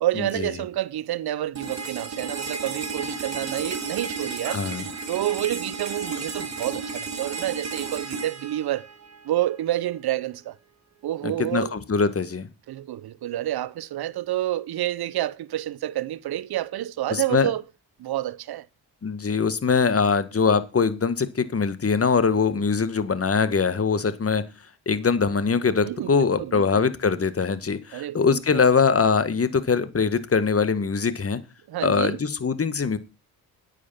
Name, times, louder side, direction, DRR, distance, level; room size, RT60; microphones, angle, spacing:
voice 1, 0.0-4.6 5.1-8.9 9.2-10.5 11.0-11.8 12.7-17.6 18.0-18.7 25.8-26.9 27.9-28.6 31.7-32.2, right 13 dB, 60° right, 0.9 m, -28 dB
sound 1, 1.6-9.5, right 4 dB, 40° right, 3.7 m, -33 dB
voice 2, 4.5-4.9 11.2-12.5 17.1-17.5 19.0-24.4 24.9-31.4 31.8-33.0, left 5 dB, 35° left, 1.7 m, -22 dB
9.8 x 8.4 x 5.9 m
supercardioid pair, 60°, 42 cm